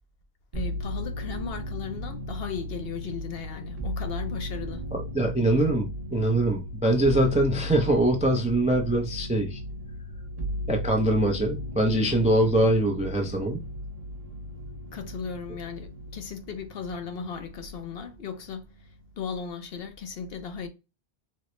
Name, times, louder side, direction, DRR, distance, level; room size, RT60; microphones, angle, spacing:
voice 1, 0.5-4.8 14.9-18.9 19.2-20.7, left 6 dB, 65° left, 0.8 m, -36 dB
sound 1, 0.5-18.0 18.3-19.1, equal, 40° right, 0.7 m, -36 dB
voice 2, 4.9-9.6 10.7-13.6, right 1 dB, 10° right, 0.3 m, -23 dB
4.1 x 2.0 x 3.0 m
omnidirectional pair, 1.1 m